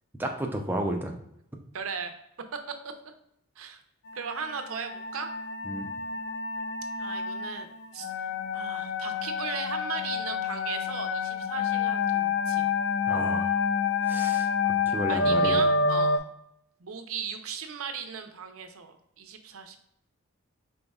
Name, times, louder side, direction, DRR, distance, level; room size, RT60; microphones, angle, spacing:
voice 1, 0.2-1.1 5.6-5.9 13.1-13.6 14.0-15.6, right 1 dB, 10° right, 2 dB, 0.5 m, -32 dB
voice 2, 1.7-2.1 2.7-2.8 3.6-3.8 4.1-5.3 7.0-7.7 7.9-8.1 8.5-12.7 15.1-16.3 16.8-19.8, right 6 dB, 75° right, 6 dB, 0.6 m, -37 dB
sound 1, 4.2-16.2, left 4 dB, 50° left, 0.3 m, -28 dB
5.3 x 3.9 x 2.3 m, 0.77 s
head